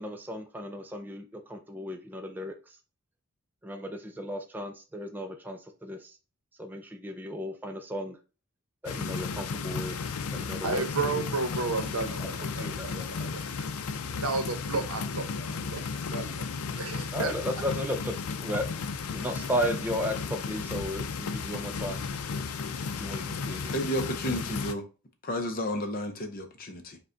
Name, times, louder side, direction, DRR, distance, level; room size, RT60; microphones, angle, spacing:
voice 1, 0.0-2.8 3.6-6.2 6.6-8.2 8.8-10.0 10.3-11.2 12.2-12.3 12.5-13.1 17.1-18.1 18.4-18.7 19.1-22.2 23.0-23.8, equal, 10° right, 0.3 m, -35 dB
sound 1, 8.9-24.7, left 5 dB, 90° left, 0.5 m, -34 dB
voice 2, 10.6-12.9 13.2-13.7 14.2-16.4 16.7-17.3, right 3 dB, 85° right, 0.8 m, -33 dB
voice 3, 23.7-24.8 25.2-27.0, equal, 40° left, 0.6 m, -32 dB
5.1 x 2.2 x 3.7 m
head